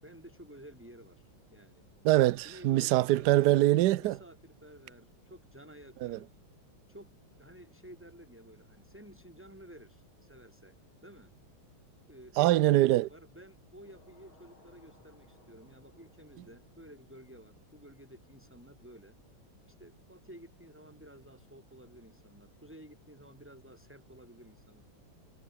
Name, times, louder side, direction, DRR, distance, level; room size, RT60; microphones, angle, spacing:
voice 1, 0.0-1.9 2.4-3.6 4.0-6.3 6.9-7.1 7.4-10.7 11.0-11.3 12.1-19.1 19.6-24.8, right 1 dB, 5° right, 6.6 m, -53 dB
voice 2, 2.0-4.2 6.0-6.2 12.4-13.1, right 16 dB, 70° right, 1.1 m, -24 dB
sound 1, 13.8-19.1, left 2 dB, 80° left, 8.7 m, -65 dB
omnidirectional pair, 2.2 m